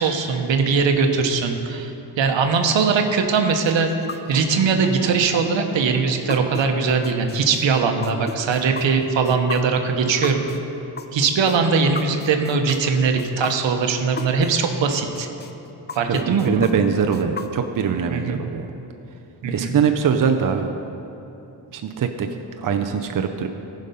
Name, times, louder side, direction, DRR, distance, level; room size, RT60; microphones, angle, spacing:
voice 1, 0.0-1.9 2.2-3.9 4.3-10.4 11.1-15.3 15.9-16.6 18.1-18.4 19.4-19.8, right 5 dB, 80° right, 5 dB, 1.0 m, -20 dB
sound 1, 3.7-14.5 14.9-17.9, left 5 dB, 25° left, 0.5 m, -34 dB
voice 2, 16.1-18.6 19.5-20.7 21.7-22.3 22.6-23.5, right 7 dB, 45° right, 5 dB, 0.6 m, -22 dB
15.0 x 5.2 x 5.4 m, 2.9 s
cardioid pair, 100°, 44 cm